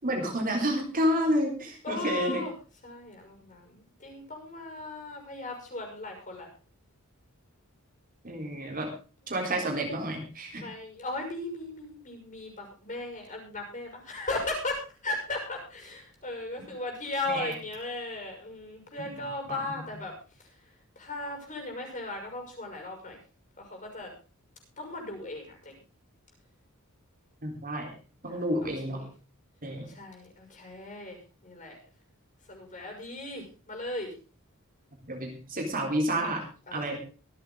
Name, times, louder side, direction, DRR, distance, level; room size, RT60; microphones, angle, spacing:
voice 1, 0.0-2.4 8.2-8.9 9.3-10.6 17.3-17.5 19.0-19.1 19.5-19.6 27.4-27.9 28.2-29.0 29.6-29.9 35.1-36.4 36.7-37.0, equal, 40° right, 1 dB, 3.9 m, -30 dB
voice 2, 1.8-2.5 2.8-6.5 8.4-8.6 9.2-9.3 9.6-9.8 10.6-20.5 21.0-23.2 23.6-24.1 24.8-25.7 28.2-29.1 29.9-31.8 32.5-34.1 36.7-37.0, left 2 dB, 35° left, 3 dB, 6.3 m, -37 dB
24.5 x 8.6 x 3.9 m, 0.35 s
head